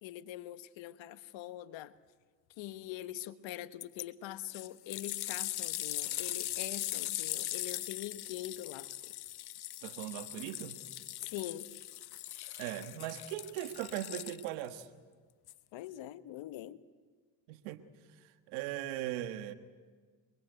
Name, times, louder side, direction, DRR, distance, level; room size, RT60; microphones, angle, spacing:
voice 1, 0.0-2.0 2.6-9.1 11.2-11.8 15.7-16.8, left 13 dB, 70° left, 13 dB, 1.4 m, -43 dB
sound 1, 3.8-4.1 4.5-14.7 15.5-15.6, left 15 dB, 55° left, 0.8 m, -40 dB
voice 2, 9.8-10.8 12.6-14.9 17.5-17.8 18.5-19.5, right 13 dB, 85° right, 10 dB, 1.5 m, -39 dB
28.0 x 22.5 x 9.2 m, 1.5 s
supercardioid pair, 65°, 47 cm